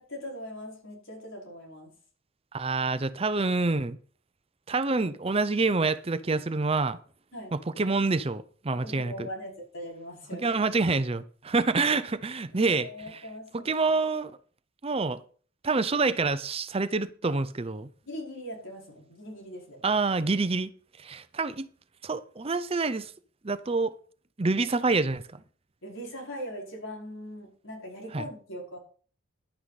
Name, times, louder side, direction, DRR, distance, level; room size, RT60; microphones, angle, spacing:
voice 1, 0.0-1.9 7.3-7.5 8.7-10.5 12.6-14.0 18.0-19.8 25.8-28.8, equal, 80° left, 5.1 m, -41 dB
voice 2, 2.5-4.0 4.7-7.0 7.5-9.3 10.4-12.9 13.5-14.3 14.8-15.2 15.6-17.9 19.8-20.7 21.0-21.7 22.0-23.1 23.4-23.9 24.4-25.4 28.1-28.3, right 3 dB, 30° right, 0.6 m, -27 dB
11.0 x 9.3 x 4.1 m
head